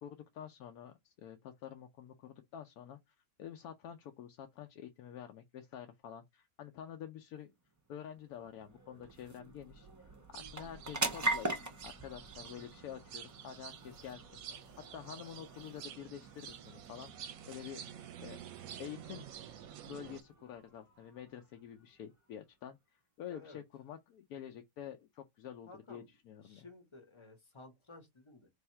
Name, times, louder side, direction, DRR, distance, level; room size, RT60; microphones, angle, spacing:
voice 1, 0.0-7.5 7.9-11.5 11.8-14.4 14.9-17.8 18.2-18.4 18.8-19.3 19.8-26.7, left 9 dB, 75° left, 1.1 m, -48 dB
sound 1, 7.6-22.4, right 1 dB, 20° right, 0.4 m, -43 dB
sound 2, 10.3-20.2, right 9 dB, 70° right, 1.0 m, -50 dB
voice 2, 23.3-23.6 25.7-26.1 26.4-28.5, left 3 dB, 25° left, 0.8 m, -55 dB
3.4 x 2.6 x 4.4 m
omnidirectional pair, 1.6 m